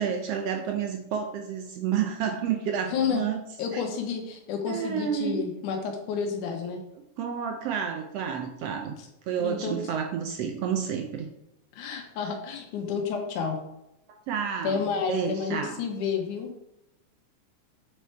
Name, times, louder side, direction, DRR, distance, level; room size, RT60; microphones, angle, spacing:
voice 1, 0.0-3.4 3.7-3.8 4.7-5.4 7.2-8.9 9.3-11.3 14.1-15.7, right 8 dB, 75° right, 5 dB, 1.5 m, -30 dB
voice 2, 2.9-3.2 3.6-6.8 9.0-9.1 9.4-9.8 11.7-13.6 14.6-16.6, left 6 dB, 90° left, 3 dB, 2.6 m, -30 dB
8.0 x 4.5 x 4.5 m, 0.86 s
omnidirectional pair, 3.4 m